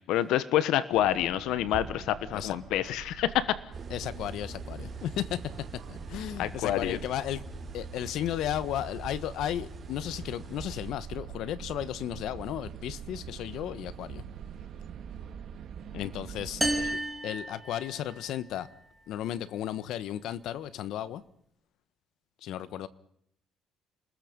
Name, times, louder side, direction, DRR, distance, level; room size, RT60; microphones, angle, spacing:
voice 1, 0.0-3.5 6.4-7.0 15.9-16.1, left 12 dB, 85° left, 14 dB, 1.4 m, -27 dB
sound 1, 0.9-17.0, right 8 dB, 50° right, 2.0 m, -45 dB
sound 2, 3.7-10.9, right 3 dB, 25° right, 3.9 m, -43 dB
voice 2, 3.9-5.4 5.9-7.4 7.7-14.2 16.0-18.7 19.1-21.2 22.4-22.9, left 11 dB, 65° left, 15 dB, 1.4 m, -34 dB
sound 3, 16.6-18.3, right 1 dB, ahead, 2.5 m, -32 dB
29.5 x 20.5 x 5.4 m, 0.70 s
cardioid pair, 160°, 0 cm